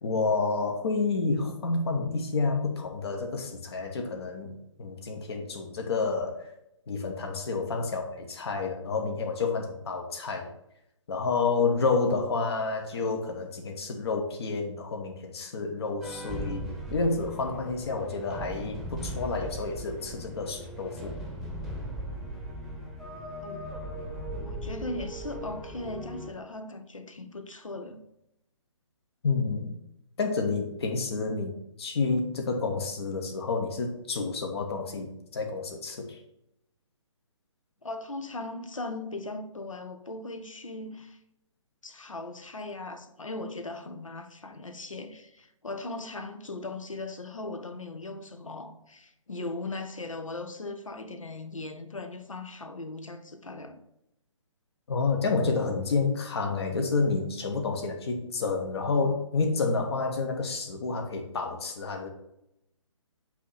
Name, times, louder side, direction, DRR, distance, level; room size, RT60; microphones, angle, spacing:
voice 1, 0.0-6.5 6.9-10.5 11.1-16.6 16.9-21.1 29.2-29.8 30.2-36.2 54.9-62.1, left 4 dB, 55° left, 1.2 m, -29 dB
sound 1, 16.0-26.3, right 1 dB, ahead, 1.0 m, -38 dB
voice 2, 23.4-23.9 24.4-28.0 37.8-41.2 41.8-53.8, left 2 dB, 80° left, 1.0 m, -38 dB
8.2 x 3.0 x 5.7 m
figure-of-eight pair, 135°, 17 cm